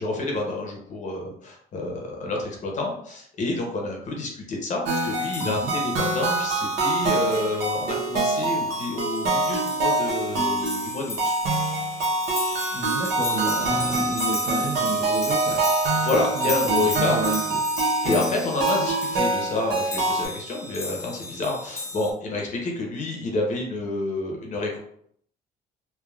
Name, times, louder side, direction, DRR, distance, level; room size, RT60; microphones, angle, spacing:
voice 1, 0.0-11.3 16.0-17.2 18.0-24.8, left 2 dB, 45° left, 0 dB, 0.9 m, -28 dB
sound 1, 4.9-22.1, left 2 dB, 15° left, 0.6 m, -36 dB
sound 2, 4.9-20.3, right 2 dB, 85° right, 0.9 m, -25 dB
voice 2, 5.4-5.7 12.7-15.7 16.3-17.6, right 2 dB, 30° right, -1 dB, 0.8 m, -31 dB
3.3 x 2.3 x 2.3 m, 0.65 s
cardioid pair, 110°, 17 cm